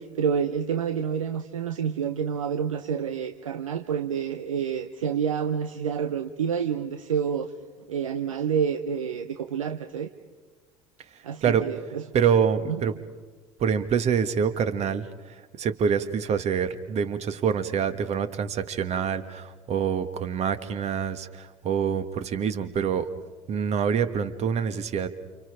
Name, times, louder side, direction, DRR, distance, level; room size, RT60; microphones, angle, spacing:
voice 1, 0.0-7.5 7.9-10.1 11.2-12.0 12.7-12.8, right 7 dB, 75° right, 8 dB, 0.9 m, -28 dB
voice 2, 12.1-12.9 13.6-15.0 15.6-23.1 23.5-25.1, right 7 dB, 40° right, 11 dB, 1.6 m, -26 dB
29.5 x 28.0 x 4.9 m, 1.4 s
figure-of-eight pair, 65°, 17 cm